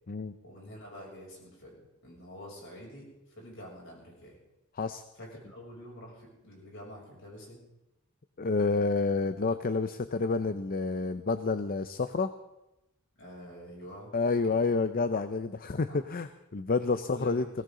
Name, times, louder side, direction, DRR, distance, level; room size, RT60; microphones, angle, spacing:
voice 1, 0.4-3.1 3.4-4.4 5.2-7.6 13.2-14.1 14.5-14.6 15.1-15.2 15.9-16.0 17.1-17.5, equal, 60° left, -2 dB, 6.8 m, -47 dB
voice 2, 8.4-12.3 14.1-17.4, left 4 dB, 45° left, 11 dB, 0.6 m, -29 dB
20.5 x 17.0 x 3.8 m, 0.93 s
head